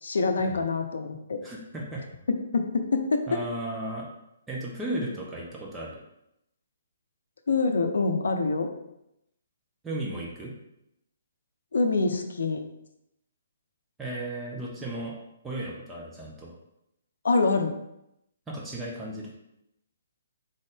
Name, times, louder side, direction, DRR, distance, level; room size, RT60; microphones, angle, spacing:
voice 1, 0.0-1.4 2.5-3.2 7.5-8.7 11.7-12.6 17.2-17.8, left 3 dB, 65° left, 6 dB, 0.6 m, -25 dB
voice 2, 1.4-2.0 3.3-4.1 4.5-6.0 9.8-10.5 14.0-15.2 15.4-16.6 18.5-19.3, right 1 dB, 10° right, -4 dB, 0.8 m, -35 dB
3.8 x 3.7 x 3.7 m, 0.83 s
figure-of-eight pair, 130°, 0 cm